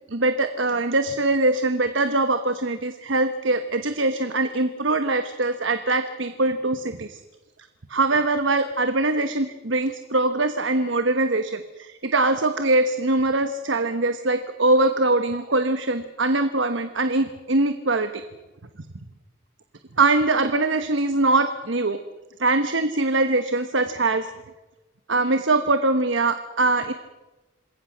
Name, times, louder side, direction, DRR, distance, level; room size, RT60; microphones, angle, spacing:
voice 1, 0.1-7.2 7.9-18.2 20.0-22.0 22.4-24.3 25.1-26.9, right 2 dB, 70° right, 9 dB, 1.2 m, -22 dB
27.0 x 21.0 x 6.3 m, 1.1 s
head